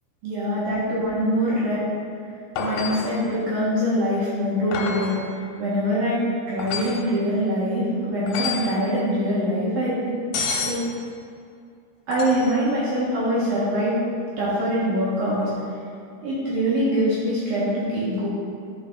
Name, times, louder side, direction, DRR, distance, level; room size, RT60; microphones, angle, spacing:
voice 1, 0.2-1.8 2.6-10.1 10.6-10.8 12.1-13.9 14.4-15.4 16.2-18.3, equal, 60° right, -9 dB, 2.9 m, -24 dB
sound 1, 2.6-3.2 4.7-5.2 6.6-7.0 8.3-8.8 10.3-10.8 12.1-12.6 15.4-15.5, left 5 dB, 90° left, 3.4 m, -29 dB
11.0 x 5.3 x 3.9 m, 2.4 s
omnidirectional pair, 5.3 m